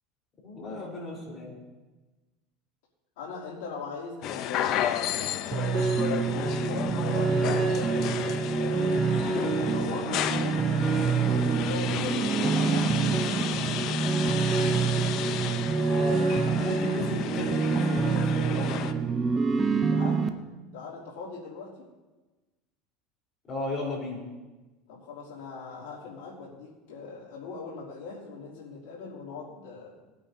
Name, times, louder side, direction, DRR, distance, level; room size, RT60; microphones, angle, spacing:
voice 1, 0.4-1.6 16.0-18.9 23.5-24.2, left 2 dB, 35° left, -2 dB, 3.9 m, -35 dB
voice 2, 3.2-9.1 9.5-10.7 11.2-13.9 19.9-20.2 20.7-21.9 24.9-29.9, left 4 dB, 90° left, -7 dB, 2.8 m, -41 dB
sound 1, 4.2-18.9, left 10 dB, 55° left, 0.6 m, -33 dB
sound 2, 5.5-20.3, right 5 dB, 25° right, 0.7 m, -26 dB
19.0 x 9.1 x 2.7 m, 1.2 s
supercardioid pair, 120°, 0 cm